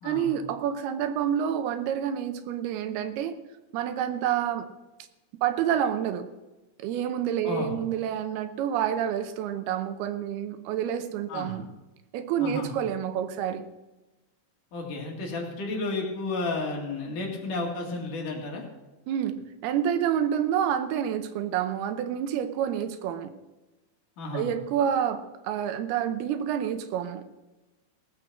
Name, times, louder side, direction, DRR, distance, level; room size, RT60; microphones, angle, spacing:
voice 1, 0.0-3.4 3.7-4.7 5.4-6.3 6.8-11.7 12.1-13.7 19.1-19.4 19.6-23.3 24.3-27.2, right 9 dB, 85° right, 10 dB, 2.9 m, -28 dB
voice 2, 14.7-18.7 24.2-24.5, left 3 dB, 60° left, 0 dB, 3.5 m, -32 dB
17.5 x 8.0 x 6.2 m, 1.1 s
omnidirectional pair, 4.4 m